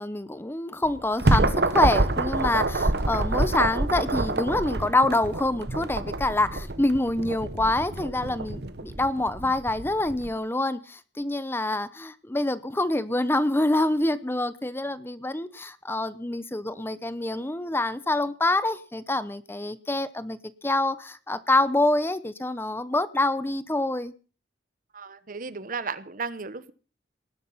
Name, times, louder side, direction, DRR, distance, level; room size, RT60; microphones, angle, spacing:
voice 1, 0.0-20.4 20.6-24.1, left 2 dB, 15° left, 14 dB, 0.8 m, -26 dB
sound 1, 0.8-10.3, right 2 dB, 65° right, 1.3 m, -27 dB
voice 2, 24.9-26.7, right 4 dB, 50° right, 15 dB, 1.0 m, -35 dB
19.5 x 12.0 x 5.6 m, 0.38 s
head